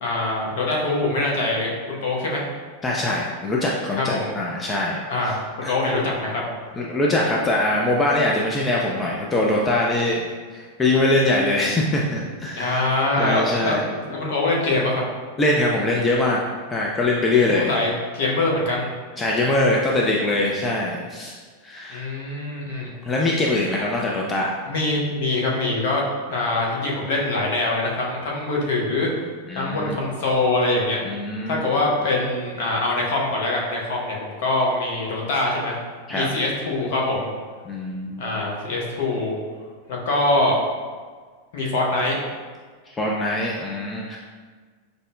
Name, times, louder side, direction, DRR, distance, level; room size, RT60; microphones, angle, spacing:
voice 1, 0.0-2.5 4.0-4.3 5.1-6.4 12.5-15.0 17.4-18.9 21.9-22.9 24.7-26.0 26.3-29.1 29.5-31.0 31.5-35.8 36.1-37.3 38.2-39.4 39.9-40.6 41.5-42.2, left 2 dB, 50° left, -2 dB, 0.7 m, -23 dB
voice 2, 2.8-5.3 5.6-5.7 6.8-10.2 10.5-12.9 13.2-13.8 15.4-16.4 16.7-17.7 19.2-21.3 21.6-22.0 23.0-24.5 29.5-30.0 31.0-31.6 36.1-36.3 37.7-38.2 43.0-44.2, left 2 dB, 15° left, -2 dB, 0.3 m, -22 dB
5.1 x 2.1 x 2.2 m, 1.6 s
figure-of-eight pair, 90°, 0 cm